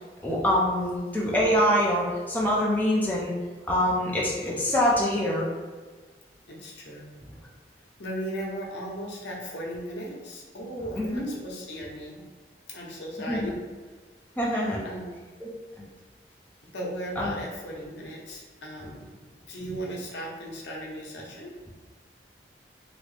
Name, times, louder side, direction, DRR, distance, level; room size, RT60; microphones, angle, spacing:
voice 1, 0.2-3.3 3.7-5.5 10.9-11.3 13.3-13.6 14.4-14.8 15.4-15.5 17.2-17.4, equal, 10° left, -5 dB, 0.5 m, -25 dB
voice 2, 0.8-1.1 6.5-7.1 8.0-12.2 12.7-13.6 14.8-15.1 16.7-21.5, equal, 80° left, -3 dB, 0.8 m, -37 dB
3.0 x 2.7 x 3.2 m, 1.4 s
head